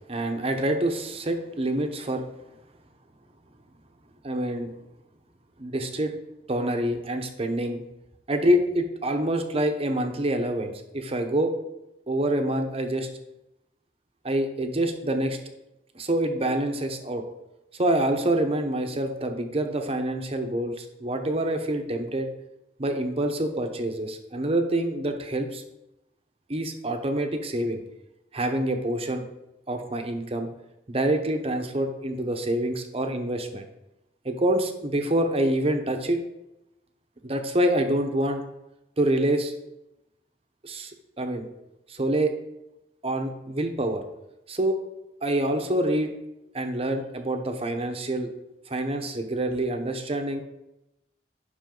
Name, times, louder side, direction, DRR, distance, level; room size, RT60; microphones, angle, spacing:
voice 1, 0.0-2.3 4.2-4.7 5.6-6.1 6.5-7.8 8.3-11.5 12.1-13.1 14.2-15.4 15.9-17.2 17.7-22.3 22.8-25.6 26.5-27.8 28.3-29.3 29.7-30.5 30.9-33.6 34.2-36.2 37.2-38.4 39.0-39.5 40.6-40.9 41.2-41.5 41.9-42.3 43.0-44.0 44.5-44.8 45.2-46.1 46.5-48.3 48.7-50.4, right 1 dB, 30° right, 5 dB, 0.9 m, -26 dB
10.5 x 6.0 x 3.9 m, 0.90 s
head